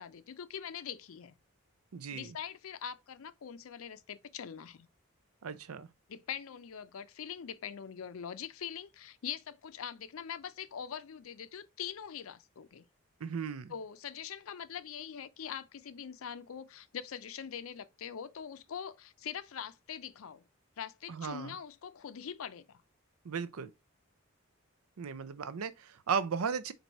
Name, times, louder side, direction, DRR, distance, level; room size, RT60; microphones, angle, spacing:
voice 1, 0.0-1.4 2.1-4.9 6.1-12.8 13.7-20.4 20.8-22.8, left 8 dB, 75° left, 0.5 m, -43 dB
voice 2, 1.9-2.4 5.4-5.9 13.2-13.7 21.1-21.6 23.2-23.7 25.0-26.7, right 6 dB, 85° right, 0.5 m, -36 dB
4.6 x 2.6 x 4.1 m
head